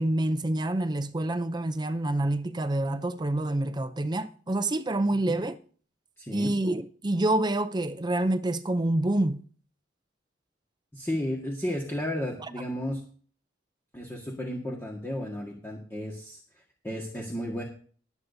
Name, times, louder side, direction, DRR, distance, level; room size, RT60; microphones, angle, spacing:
voice 1, 0.0-5.6 6.3-9.4, right 1 dB, 25° right, 0.5 m, -27 dB
voice 2, 6.2-6.5 10.9-13.0 13.9-16.4 16.8-17.6, left 1 dB, 15° left, 1.7 m, -33 dB
21.0 x 8.3 x 2.7 m
head